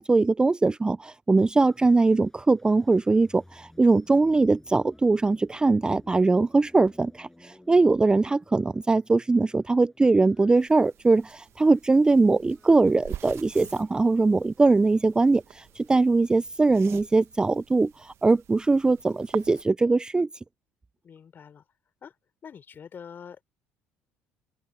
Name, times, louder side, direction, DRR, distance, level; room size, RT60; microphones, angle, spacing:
voice 1, 0.0-20.3, right 3 dB, 15° right, 0.4 m, -21 dB
sound 1, 1.6-17.2, left 1 dB, 10° left, 7.0 m, -57 dB
sound 2, 10.6-19.6, right 11 dB, 60° right, 1.5 m, -45 dB
voice 2, 21.0-21.6 22.0-22.1 22.4-23.4, left 7 dB, 40° left, 4.1 m, -45 dB
supercardioid pair, 75°, 5 cm